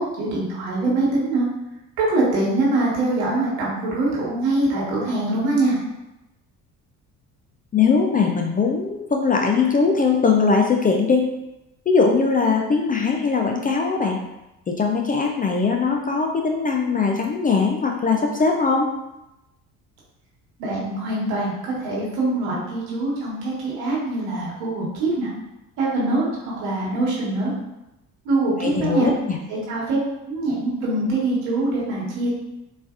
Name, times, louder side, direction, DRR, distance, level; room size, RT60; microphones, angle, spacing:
voice 1, 0.0-1.5 2.1-5.8 20.6-25.3 25.8-27.5 28.2-29.1 29.5-30.0 30.3-32.3, right 2 dB, 80° right, -5 dB, 1.4 m, -23 dB
voice 2, 7.7-11.2 11.9-14.2 14.7-18.9 28.6-29.4, left 4 dB, 20° left, 1 dB, 0.3 m, -20 dB
4.0 x 2.5 x 2.4 m, 0.93 s
hypercardioid pair, 65°, 42 cm